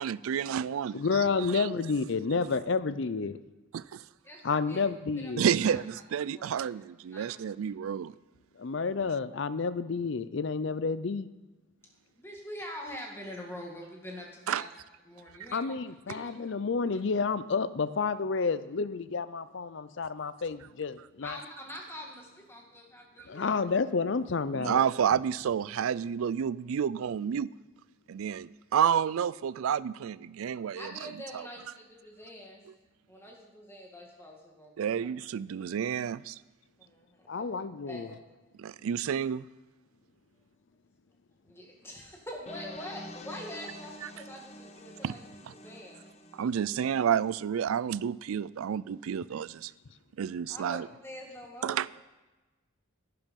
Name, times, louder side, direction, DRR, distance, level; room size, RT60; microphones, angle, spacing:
voice 1, 0.0-1.0 1.5-1.8 2.4-2.5 5.4-8.1 14.5-14.6 24.5-27.5 28.1-31.1 31.3-31.4 34.8-36.4 38.6-39.5 45.0-45.2 45.4-45.5 46.3-49.7 50.2-50.9 51.6-51.9, right 8 dB, 80° right, 0.3 m, -30 dB
voice 2, 0.9-3.3 4.4-5.4 8.6-11.3 15.5-21.4 23.3-24.8 37.3-38.1, left 4 dB, 60° left, 0.5 m, -30 dB
voice 3, 7.1-7.5 12.2-14.7 15.1-15.6 16.1-16.3 21.2-23.5 30.7-32.6 33.1-35.1 36.8-37.6 37.9-38.2 41.4-46.0 50.5-51.8, equal, 10° left, 1.9 m, -44 dB
sound 1, 42.5-47.4, left 1 dB, 30° left, 0.9 m, -48 dB
11.0 x 10.5 x 5.3 m
head